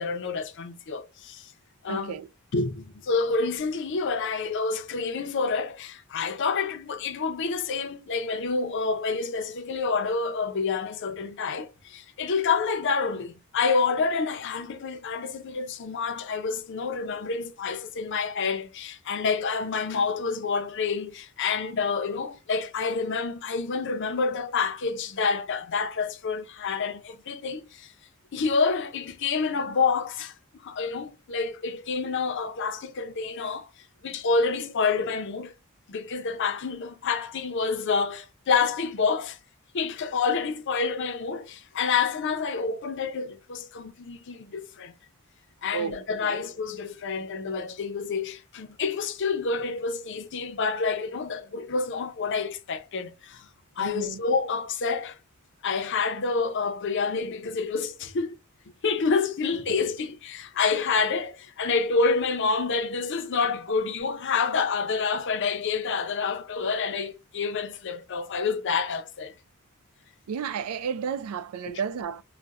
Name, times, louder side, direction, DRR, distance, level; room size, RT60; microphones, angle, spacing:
voice 1, 0.0-1.5 1.8-2.1 2.5-27.9 28.3-30.3 30.6-33.7 34.0-35.5 35.9-39.4 39.7-44.9 45.6-53.5 53.8-55.2 55.6-58.4 58.8-69.3 71.7-71.8, left 4 dB, 55° left, 0.5 m, -28 dB
voice 2, 1.9-2.3 45.7-46.4 53.8-54.2 70.3-72.2, right 6 dB, 85° right, 0.4 m, -32 dB
4.0 x 2.1 x 2.4 m
head